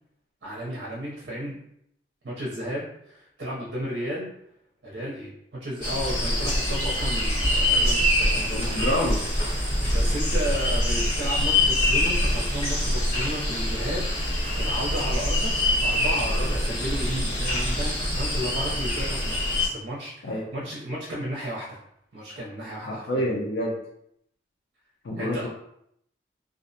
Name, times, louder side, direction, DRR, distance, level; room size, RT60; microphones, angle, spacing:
voice 1, 0.4-1.6 2.2-4.3 4.8-9.0 9.9-21.8 22.1-23.3 25.2-25.5, equal, 60° right, -4 dB, 0.5 m, -33 dB
sound 1, 5.8-19.7, left 1 dB, 45° left, 1.2 m, -24 dB
voice 2, 8.5-9.2 20.2-20.4 22.8-23.8 25.0-25.5, left 1 dB, 80° left, -2 dB, 0.4 m, -27 dB
2.4 x 2.0 x 2.6 m, 0.74 s
head